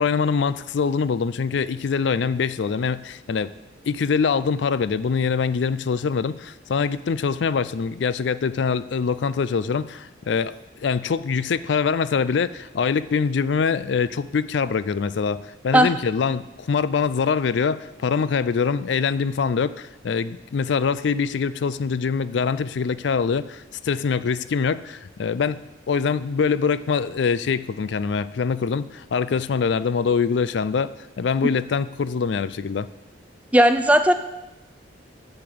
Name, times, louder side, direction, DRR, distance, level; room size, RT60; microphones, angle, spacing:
voice 1, 0.0-3.5 3.9-10.5 10.8-15.4 15.6-25.6 25.9-32.9, left 5 dB, 70° left, 16 dB, 0.4 m, -24 dB
voice 2, 33.5-34.1, right 1 dB, 5° right, 9 dB, 0.5 m, -15 dB
10.5 x 6.7 x 7.8 m, 0.99 s
head